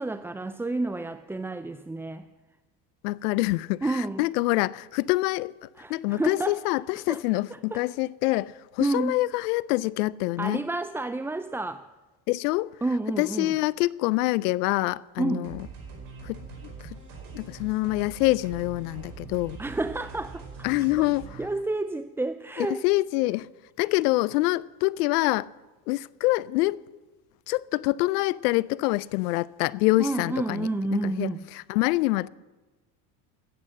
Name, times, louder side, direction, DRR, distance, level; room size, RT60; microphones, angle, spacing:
voice 1, 0.0-2.3 3.8-4.3 5.8-6.6 7.1-7.2 7.7-7.8 8.8-9.2 10.4-11.8 12.8-13.5 15.2-15.5 19.6-20.4 21.0-21.1 21.4-22.8 30.0-31.4, right 2 dB, 5° right, 0.4 m, -30 dB
voice 2, 3.0-10.6 12.3-12.7 13.2-15.7 16.2-16.7 17.3-19.6 20.6-21.4 22.6-23.5 23.8-25.5 25.9-26.8 27.5-32.3, left 19 dB, 80° left, 0.5 m, -26 dB
sound 1, 15.4-21.5, right 4 dB, 70° right, 5.1 m, -43 dB
14.0 x 8.5 x 7.4 m
hypercardioid pair, 75°, 46 cm